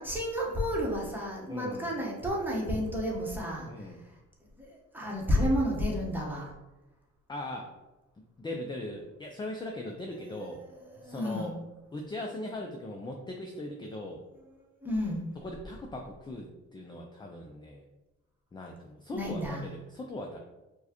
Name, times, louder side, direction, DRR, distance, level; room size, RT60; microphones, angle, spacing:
voice 1, 0.0-4.1 4.6-6.5 10.3-11.5 14.6-15.3 19.1-19.7, equal, 5° right, -3 dB, 1.0 m, -32 dB
voice 2, 1.5-1.9 3.6-4.0 7.3-7.8 8.4-10.6 11.0-11.5 11.9-14.2 15.4-17.9 18.5-20.4, left 1 dB, 15° left, 2 dB, 0.3 m, -39 dB
4.5 x 2.2 x 2.9 m, 1.1 s
cardioid pair, 90°, 30 cm